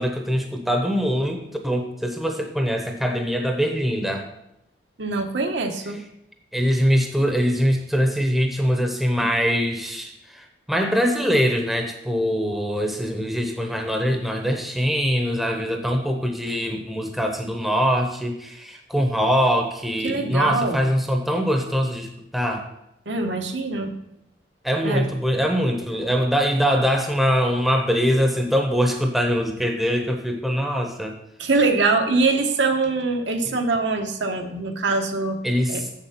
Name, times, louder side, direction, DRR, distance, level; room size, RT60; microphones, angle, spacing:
voice 1, 0.0-4.3 6.5-22.6 24.6-31.2 33.4-33.5 35.4-35.9, equal, ahead, 3 dB, 0.8 m, -23 dB
voice 2, 5.0-6.0 20.0-20.8 23.1-23.9 24.8-25.1 31.4-35.4 35.7-35.8, right 3 dB, 75° right, 3 dB, 1.1 m, -23 dB
7.4 x 7.3 x 5.8 m, 0.83 s
head